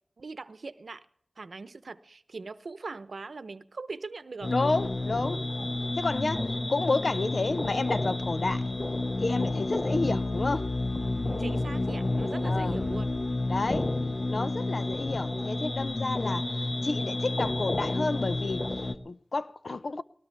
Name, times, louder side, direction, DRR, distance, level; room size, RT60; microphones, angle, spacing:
voice 1, 0.2-1.0 1.4-4.5 11.2-13.1, right 3 dB, 85° right, 0.8 m, -41 dB
sound 1, 4.4-18.9, left 2 dB, 50° left, 1.1 m, -30 dB
voice 2, 4.5-5.4 6.0-8.6 9.2-10.7 12.4-12.8 13.5-13.9 14.3-20.0, left 3 dB, 70° left, 0.7 m, -31 dB
19.5 x 18.5 x 3.4 m
wide cardioid pair, 45°, 0 cm